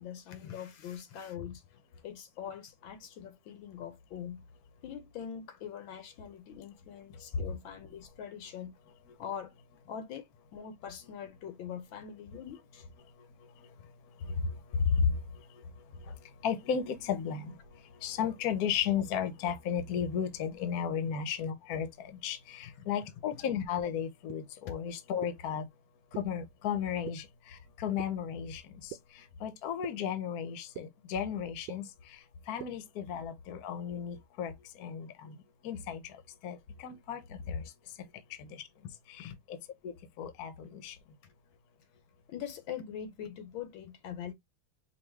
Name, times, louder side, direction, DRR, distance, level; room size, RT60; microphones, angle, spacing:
voice 1, 0.0-1.6 2.0-4.4 4.8-8.7 9.2-9.5 9.9-12.9 22.8-22.9 23.3-23.4 33.1-33.2 36.9-37.0 39.2-39.4 42.3-44.3, left 8 dB, 75° left, 1.5 m, -43 dB
voice 2, 14.7-15.1 16.4-17.5 18.0-25.6 26.1-32.2 32.5-34.5 34.8-35.4 35.6-36.2 36.4-37.6 38.4-38.6 39.1-39.6 39.8-41.0, left 7 dB, 60° left, 1.2 m, -34 dB
sound 1, 24.3-24.4 25.2-25.3 26.1-26.2 27.1-27.2 28.0-28.1 28.9-29.0 29.8-29.9 30.7-30.8 31.7-31.8 32.6-32.7, right 14 dB, 85° right, 1.4 m, -41 dB
5.4 x 2.6 x 3.3 m
omnidirectional pair, 2.3 m